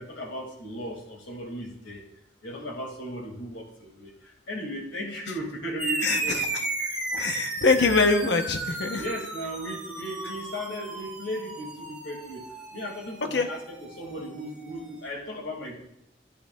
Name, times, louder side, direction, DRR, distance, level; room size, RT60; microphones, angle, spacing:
voice 1, 0.0-2.1 2.4-6.4 6.8-7.0 8.9-15.9, equal, 85° left, 0 dB, 2.2 m, -36 dB
sound 1, 5.8-14.7, right 2 dB, 5° right, 0.9 m, -34 dB
voice 2, 6.0-6.6 7.1-9.0 13.3-13.5, left 3 dB, 65° left, 6 dB, 0.8 m, -24 dB
13.0 x 8.4 x 2.3 m, 0.78 s
head